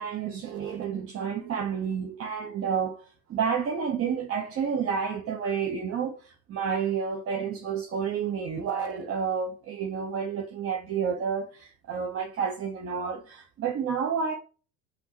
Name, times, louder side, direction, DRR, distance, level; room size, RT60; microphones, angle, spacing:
voice 1, 0.0-14.3, right 6 dB, 30° right, 0.7 m, -30 dB
5.3 x 2.8 x 2.9 m
hypercardioid pair, 75°, 46 cm